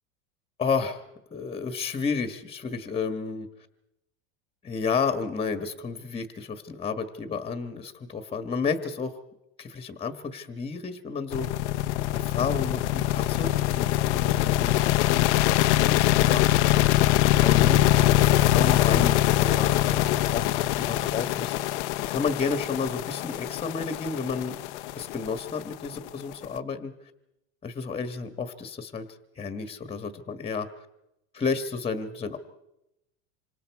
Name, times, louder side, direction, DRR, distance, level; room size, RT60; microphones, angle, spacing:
voice 1, 0.6-1.0 1.3-3.5 4.6-9.1 9.6-11.7 12.1-16.4 17.3-17.8 18.2-21.6 22.1-24.6 24.9-26.9 27.6-29.1 29.4-30.7 31.3-32.4, left 5 dB, 15° left, 9 dB, 1.5 m, -31 dB
sound 1, 11.3-26.4, left 15 dB, 90° left, 0.8 m, -23 dB
27.0 x 25.0 x 4.8 m, 0.89 s
supercardioid pair, 140°, 33 cm